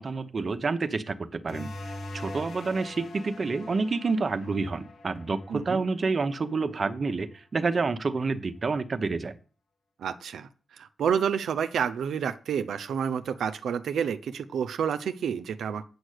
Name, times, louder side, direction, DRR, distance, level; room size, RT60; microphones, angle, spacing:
voice 1, 0.0-1.7 2.1-9.3, right 4 dB, 35° right, 9 dB, 0.9 m, -28 dB
sound 1, 1.5-6.7, left 1 dB, 90° left, 3.4 m, -42 dB
voice 2, 5.5-5.8 10.0-15.8, right 7 dB, 85° right, 10 dB, 0.7 m, -29 dB
8.6 x 7.9 x 6.6 m, 0.39 s
wide cardioid pair, 140°, 0 cm